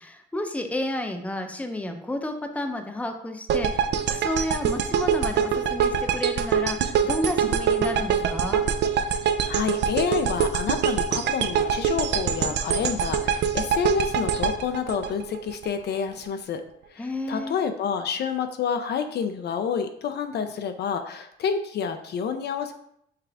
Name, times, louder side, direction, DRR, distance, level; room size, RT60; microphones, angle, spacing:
voice 1, 0.0-8.7 17.0-17.6, left 1 dB, 5° left, 5 dB, 0.5 m, -31 dB
sound 1, 3.5-15.7, right 7 dB, 60° right, 0.4 m, -24 dB
voice 2, 9.4-16.6 16.9-22.7, left 7 dB, 55° left, 8 dB, 0.4 m, -28 dB
5.7 x 2.4 x 3.4 m, 0.73 s
cardioid pair, 90°, 20 cm